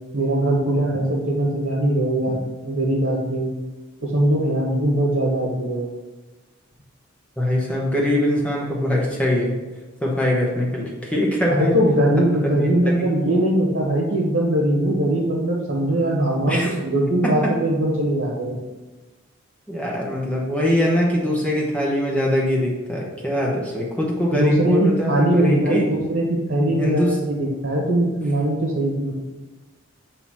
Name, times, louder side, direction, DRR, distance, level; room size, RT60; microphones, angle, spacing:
voice 1, 0.1-3.5 4.0-5.8 11.5-18.6 24.3-29.2, right 1 dB, 60° right, -3 dB, 1.4 m, -21 dB
voice 2, 7.4-9.5 10.0-11.7 12.9-13.0 16.5-16.7 17.2-17.5 19.7-25.9 26.7-27.2, left 1 dB, 5° left, -3 dB, 1.1 m, -22 dB
8.1 x 2.9 x 5.5 m, 1.2 s
head